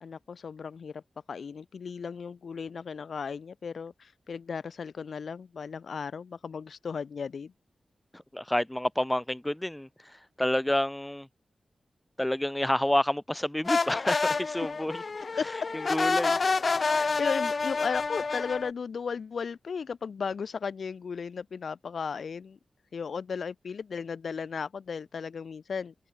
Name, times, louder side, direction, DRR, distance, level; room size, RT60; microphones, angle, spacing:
voice 1, 0.0-1.0 1.3-7.5 15.4-15.5 16.3-16.5 16.9-22.6 22.9-25.9, left 6 dB, 65° left, 0.4 m, -35 dB
voice 2, 8.1-9.9 10.4-11.3 12.2-15.0 15.7-16.4, left 1 dB, 10° left, 0.7 m, -29 dB
sound 1, 13.6-18.7, left 4 dB, 40° left, 0.7 m, -28 dB
wide cardioid pair, 150°, 0 cm